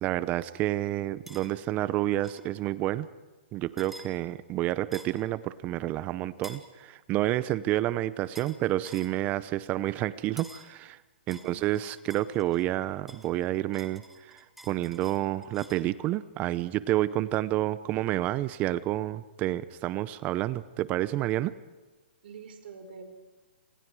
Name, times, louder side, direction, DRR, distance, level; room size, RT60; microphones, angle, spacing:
voice 1, 0.0-3.1 3.5-11.0 11.3-21.5, right 14 dB, 25° right, 17 dB, 0.7 m, -29 dB
sound 1, 1.3-1.5 2.2-2.5 3.8-4.1 4.9-5.2 6.4-6.7 8.3-8.6 8.8-9.1 10.4-10.7 11.3-12.7 13.1-15.9, right 1 dB, 5° right, 2.0 m, -49 dB
voice 2, 11.3-11.6 22.2-23.0, right 5 dB, 60° right, 6 dB, 5.2 m, -45 dB
28.5 x 27.0 x 4.8 m, 1.3 s
hypercardioid pair, 145°, 6 cm